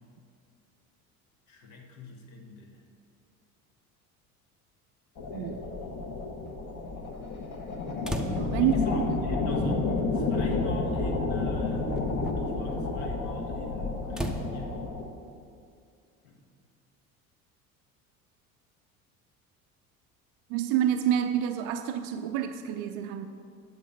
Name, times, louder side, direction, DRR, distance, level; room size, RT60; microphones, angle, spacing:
voice 1, 1.5-2.8 8.5-12.1 12.3-14.9 16.2-16.5, left 3 dB, 60° left, 2 dB, 1.5 m, -43 dB
sound 1, 5.2-15.1, left 3 dB, 40° left, 1.4 m, -30 dB
voice 2, 5.3-5.6 8.3-8.7 9.1-9.2 20.5-23.3, right 10 dB, 45° right, 8 dB, 0.5 m, -28 dB
sound 2, 8.0-8.7 9.9-10.0 11.0-11.2 11.7-12.3 14.1-14.5, equal, ahead, 0.6 m, -35 dB
8.9 x 7.4 x 5.7 m, 2.4 s
figure-of-eight pair, 65°, 44 cm